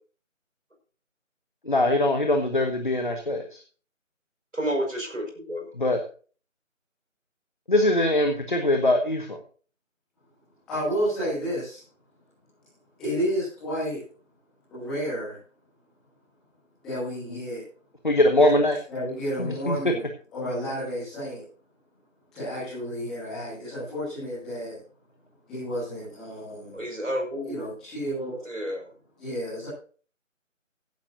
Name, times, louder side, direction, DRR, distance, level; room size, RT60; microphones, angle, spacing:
voice 1, 1.7-3.6 5.8-6.0 7.7-9.4 18.0-18.8 19.4-19.8, left 1 dB, 40° left, 5 dB, 1.6 m, -22 dB
voice 2, 4.5-5.7 26.7-27.7 28.4-28.9, equal, 70° right, 3 dB, 5.7 m, -30 dB
voice 3, 10.7-11.8 13.0-14.0 14.7-15.4 16.8-17.6 18.5-20.1 20.3-21.4 22.3-24.8 25.5-26.9 27.4-28.4 29.2-29.7, equal, ahead, -14 dB, 2.4 m, -31 dB
16.0 x 11.5 x 2.7 m, 0.40 s
figure-of-eight pair, 165°, 40 cm